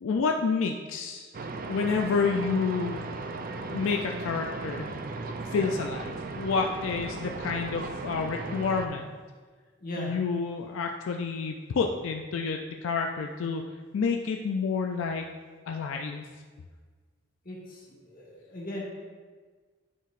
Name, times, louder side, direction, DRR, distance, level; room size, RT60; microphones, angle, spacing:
voice 1, 0.0-1.3 1.7-3.1 3.7-4.9 5.5-9.1 10.0-13.6 13.9-15.3 15.7-16.2, left 5 dB, 85° left, 3 dB, 0.4 m, -29 dB
sound 1, 1.3-8.9, right 3 dB, 45° right, 0.4 m, -36 dB
voice 2, 9.8-10.1 17.4-18.8, equal, 45° left, -4 dB, 1.5 m, -38 dB
9.9 x 4.7 x 2.5 m, 1.5 s
head